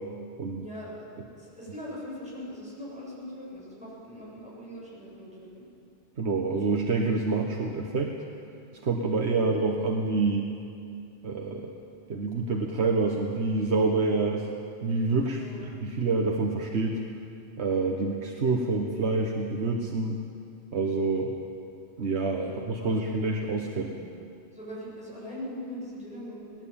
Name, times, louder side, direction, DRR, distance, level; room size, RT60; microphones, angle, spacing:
voice 1, 0.6-5.7 15.3-15.6 22.4-22.5 22.8-23.0 24.5-26.6, equal, 5° right, -8 dB, 7.6 m, -41 dB
voice 2, 6.2-8.1 8.8-10.5 11.2-11.7 12.1-14.5 14.8-17.0 17.6-20.2 20.7-21.3 22.0-23.9, right 3 dB, 90° right, 1 dB, 1.6 m, -27 dB
19.0 x 18.5 x 8.8 m, 2.5 s
omnidirectional pair, 1.1 m